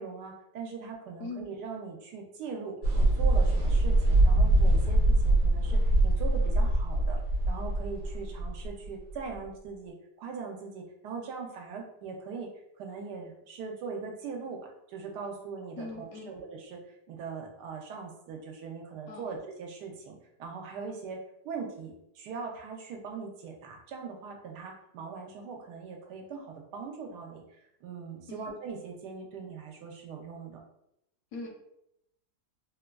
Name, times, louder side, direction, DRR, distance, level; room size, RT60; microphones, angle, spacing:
voice 1, 0.0-7.2 7.5-12.5 12.8-16.8 17.1-21.2 21.4-27.4 27.8-30.6, right 5 dB, 80° right, 2 dB, 1.2 m, -41 dB
sound 1, 2.8-9.5, right 1 dB, 60° right, 0.9 m, -23 dB
voice 2, 15.8-16.3 19.1-19.3 28.3-28.5 31.3-31.5, left 3 dB, 70° left, 1 dB, 0.9 m, -40 dB
3.8 x 2.3 x 2.2 m, 0.79 s
omnidirectional pair, 1.8 m